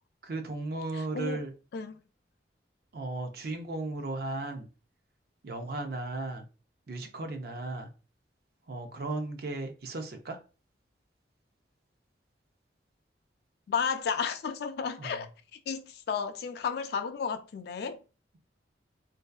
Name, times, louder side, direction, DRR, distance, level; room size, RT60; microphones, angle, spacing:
voice 1, 0.2-1.5 2.9-4.7 5.4-6.4 6.9-7.9 8.7-10.4 15.0-15.2, right 2 dB, 55° right, 0.5 m, -35 dB
voice 2, 0.9-1.4 1.7-2.0 13.7-15.3 15.7-18.0, left 6 dB, 60° left, 0.3 m, -33 dB
2.6 x 2.3 x 2.2 m
head